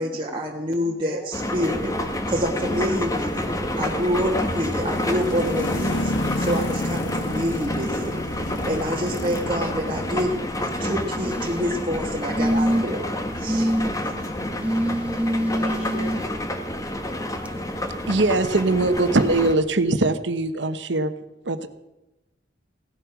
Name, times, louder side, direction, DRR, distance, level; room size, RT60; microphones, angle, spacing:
voice 1, 0.0-13.8, equal, 25° right, -3 dB, 1.4 m, -28 dB
sound 1, 1.3-19.5, left 1 dB, 20° left, 1.4 m, -29 dB
sound 2, 2.8-15.8, left 2 dB, 85° left, 0.9 m, -34 dB
sound 3, 11.1-11.7 12.4-13.0 13.5-13.9 14.6-16.2 17.5-17.6, equal, 5° right, 1.1 m, -24 dB
voice 2, 15.5-16.2, left 2 dB, 55° left, -3 dB, 3.4 m, -35 dB
voice 3, 18.1-21.1 21.4-21.7, right 2 dB, 75° right, 11 dB, 1.1 m, -21 dB
17.0 x 12.0 x 5.9 m, 1.0 s
head